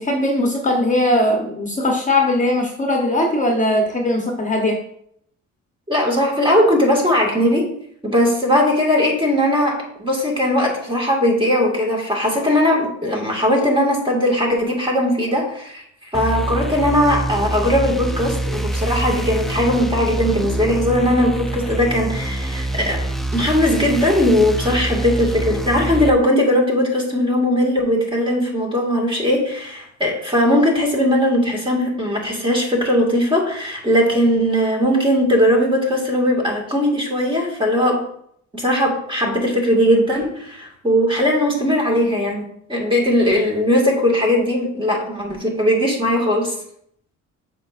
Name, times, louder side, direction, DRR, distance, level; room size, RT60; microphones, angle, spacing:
voice 1, 0.0-4.8, left 1 dB, 25° left, 1 dB, 0.9 m, -19 dB
voice 2, 5.9-7.7 8.0-23.1 23.3-38.0 38.5-46.6, equal, 15° right, -1 dB, 1.8 m, -19 dB
sound 1, 16.1-26.1, right 1 dB, ahead, 0.5 m, -25 dB
7.3 x 5.1 x 2.5 m, 0.70 s
cardioid pair, 90°, 30 cm